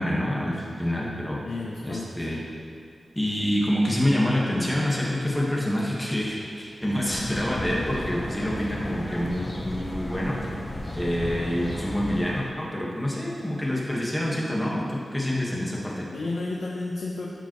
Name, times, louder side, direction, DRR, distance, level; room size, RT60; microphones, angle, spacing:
voice 1, 0.0-1.4 1.8-2.4 3.1-10.4 10.9-16.0, equal, 5° left, -5 dB, 1.5 m, -27 dB
voice 2, 1.4-2.3 16.1-17.3, left 3 dB, 70° left, -3 dB, 0.8 m, -32 dB
sound 1, 7.0-12.5, left 1 dB, 30° left, 0.8 m, -34 dB
13.0 x 5.3 x 3.1 m, 2.4 s
wide cardioid pair, 115°, 0 cm